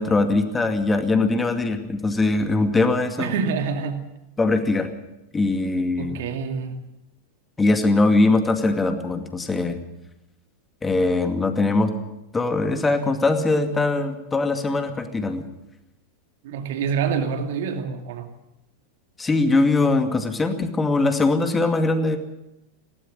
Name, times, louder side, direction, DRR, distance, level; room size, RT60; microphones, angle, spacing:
voice 1, 0.0-3.3 4.4-4.9 5.3-6.2 7.6-9.8 10.8-11.9 12.3-15.5 19.2-22.2, left 3 dB, 15° left, 7 dB, 2.3 m, -21 dB
voice 2, 3.2-4.1 6.0-6.8 16.4-18.3, right 6 dB, 55° right, 6 dB, 2.4 m, -26 dB
19.5 x 17.5 x 7.7 m, 0.91 s
figure-of-eight pair, 90°, 0 cm